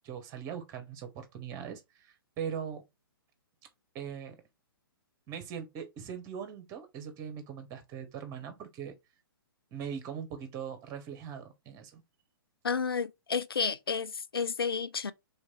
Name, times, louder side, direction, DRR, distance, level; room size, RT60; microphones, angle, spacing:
voice 1, 0.0-2.8 3.9-4.4 5.3-9.0 9.7-12.0, right 8 dB, 25° right, 1.1 m, -40 dB
voice 2, 12.6-15.1, left 6 dB, 75° left, 0.4 m, -31 dB
3.4 x 3.2 x 4.2 m
figure-of-eight pair, 115°, 12 cm